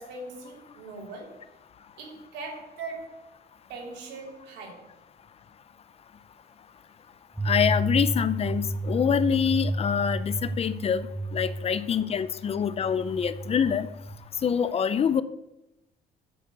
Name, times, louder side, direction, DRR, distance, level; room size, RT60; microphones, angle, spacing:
voice 1, 0.0-1.4 2.0-3.3 3.7-4.9, right 3 dB, 85° right, 1 dB, 2.7 m, -40 dB
sound 1, 7.3-14.2, right 1 dB, 5° right, 1.2 m, -32 dB
voice 2, 7.4-11.1 11.3-13.9 14.4-15.2, left 7 dB, 35° left, 14 dB, 0.5 m, -25 dB
8.5 x 6.4 x 6.7 m, 0.91 s
cardioid pair, 110°, 17 cm